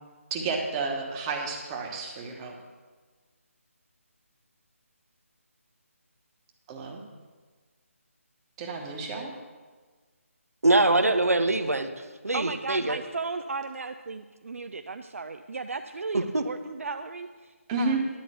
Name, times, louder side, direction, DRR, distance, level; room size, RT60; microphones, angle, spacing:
voice 1, 0.3-2.5 6.7-7.0 8.6-9.3 17.7-18.0, right 4 dB, 20° right, 1 dB, 1.2 m, -31 dB
voice 2, 10.6-11.9 12.2-13.0 16.1-16.4, right 2 dB, 85° right, 8 dB, 0.9 m, -23 dB
voice 3, 12.3-18.1, right 4 dB, 70° right, 8 dB, 0.5 m, -35 dB
10.5 x 5.1 x 8.0 m, 1.4 s
figure-of-eight pair, 155°, 8 cm